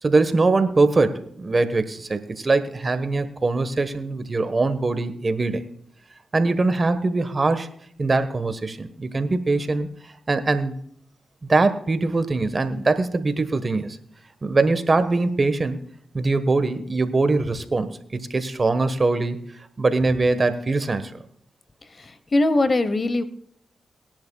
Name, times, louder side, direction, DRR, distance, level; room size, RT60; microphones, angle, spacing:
voice 1, 0.0-5.6 6.3-7.7 8.0-9.9 10.3-10.7 11.5-14.0 14.4-15.8 16.1-19.4 19.8-21.1, right 3 dB, 40° right, 11 dB, 1.3 m, -22 dB
voice 2, 21.9-23.2, left 2 dB, 45° left, 13 dB, 1.0 m, -21 dB
20.0 x 10.5 x 2.3 m, 0.65 s
supercardioid pair, 45°, 0 cm